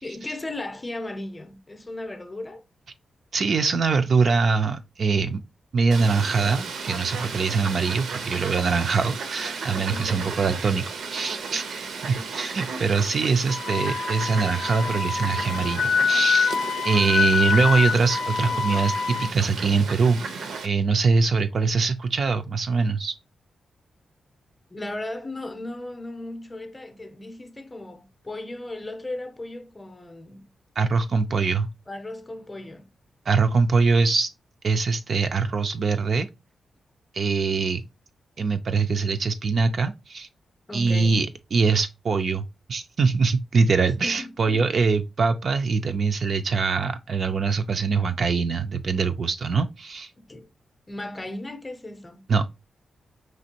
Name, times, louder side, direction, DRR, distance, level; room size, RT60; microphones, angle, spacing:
voice 1, 0.0-2.6 9.9-10.3 24.7-30.5 31.9-32.9 33.7-33.8 40.7-41.3 43.9-44.8 50.2-50.5 50.9-52.2, left 2 dB, 15° left, 0.6 m, -36 dB
voice 2, 3.3-5.4 5.7-10.8 11.1-16.6 16.8-20.2 20.6-23.1 30.8-31.7 33.3-34.3 34.6-36.3 37.1-37.8 38.4-40.3 40.7-50.1 52.3-52.5, right 4 dB, 45° right, 0.3 m, -23 dB
Fowl, 5.9-20.7, right 5 dB, 85° right, 0.6 m, -34 dB
Wind instrument woodwind instrument, 13.5-19.3, left 5 dB, 85° left, 0.5 m, -25 dB
5.1 x 3.2 x 2.8 m
wide cardioid pair, 155°, 0 cm